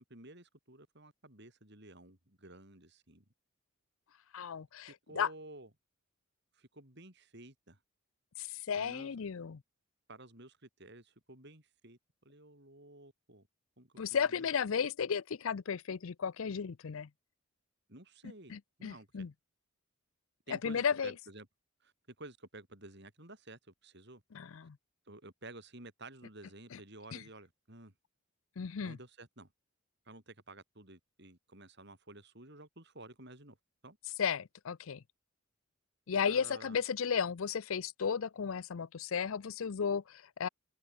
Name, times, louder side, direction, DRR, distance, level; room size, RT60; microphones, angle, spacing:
voice 1, 0.0-3.2 4.8-5.7 6.5-7.8 8.8-9.1 10.1-13.5 13.8-14.5 17.9-18.5 18.8-19.3 20.5-21.5 21.8-21.9 22.2-24.2 25.1-27.9 28.8-29.5 30.0-33.6 33.8-34.0 36.2-36.8, right 2 dB, 50° right, 4.9 m, -52 dB
voice 2, 4.3-5.3 8.4-9.6 14.0-17.1 18.5-19.3 20.6-21.1 24.3-24.8 27.1-27.2 28.6-29.0 34.2-35.0 36.1-40.5, left 6 dB, 65° left, 0.5 m, -34 dB
head